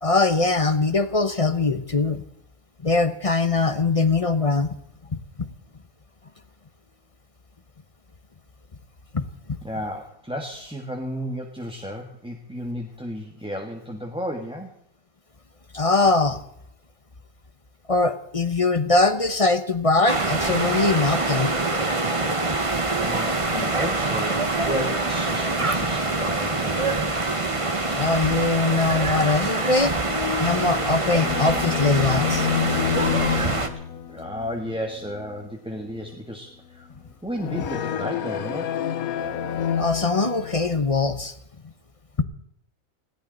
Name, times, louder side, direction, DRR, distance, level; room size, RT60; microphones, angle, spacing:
voice 1, 0.0-2.2 2.8-4.7 5.4-5.5 9.1-9.2 9.5-9.6 15.7-16.4 17.9-21.5 28.0-29.9 30.4-32.5 39.8-41.3, left 3 dB, 25° left, 10 dB, 0.9 m, -22 dB
voice 2, 9.6-14.7 22.9-27.0 34.1-36.9 37.2-38.8, equal, 5° right, 1 dB, 1.4 m, -33 dB
sound 1, 20.1-33.7, right 2 dB, 25° right, 1.3 m, -25 dB
sound 2, 30.1-35.5 35.8-36.1 37.3-40.7, left 9 dB, 75° left, 1.3 m, -29 dB
20.0 x 16.5 x 3.9 m, 0.73 s
omnidirectional pair, 1.5 m